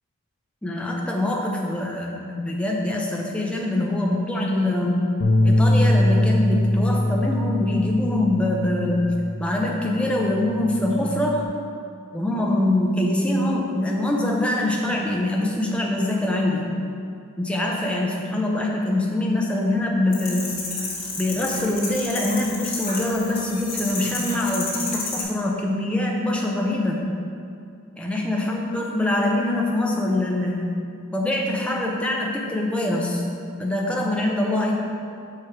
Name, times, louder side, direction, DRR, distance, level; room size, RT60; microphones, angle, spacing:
voice 1, 0.6-5.1 5.4-9.1 9.4-11.5 12.1-16.7 17.4-20.6 21.2-27.1 28.0-30.7 31.1-33.2 33.6-34.7, left 1 dB, 5° left, -2 dB, 0.5 m, -24 dB
Bass guitar, 5.2-9.7 10.1-11.5, left 1 dB, 70° left, 0.5 m, -22 dB
sound 1, 20.1-25.2, left 3 dB, 40° left, 1.4 m, -31 dB
6.0 x 4.8 x 4.7 m, 2.5 s
head